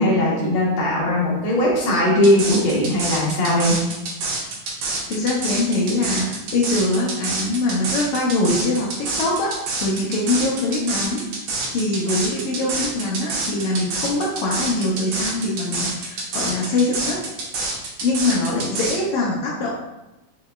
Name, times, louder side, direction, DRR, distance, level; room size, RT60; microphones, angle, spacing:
voice 1, 0.0-3.8, left 1 dB, 55° left, -5 dB, 1.6 m, -19 dB
sound 1, 2.2-19.0, right 3 dB, 65° right, 1.7 m, -27 dB
voice 2, 4.8-6.3 6.5-8.9 9.2-9.5 9.8-11.2 11.7-17.2 18.0-19.7, left 2 dB, 85° left, -3 dB, 1.3 m, -23 dB
5.2 x 3.7 x 2.3 m, 0.99 s
omnidirectional pair, 3.6 m